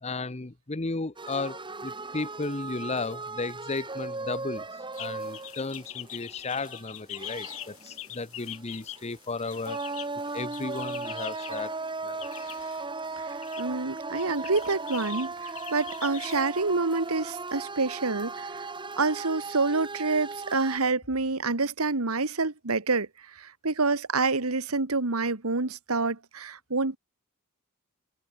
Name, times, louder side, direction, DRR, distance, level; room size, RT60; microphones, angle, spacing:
voice 1, 0.0-4.6 5.0-9.9 10.3-11.8 12.0-12.3, left 3 dB, 30° left, 1.0 m, -34 dB
sound 1, 1.2-20.8, right 3 dB, 20° right, 2.1 m, -37 dB
sound 2, 4.9-11.6 12.2-12.9 13.3-13.6 14.2-16.4, left 14 dB, 70° left, 4.9 m, -43 dB
voice 2, 13.2-18.6 19.0-23.1 23.4-27.0, right 3 dB, 85° right, 1.7 m, -27 dB
head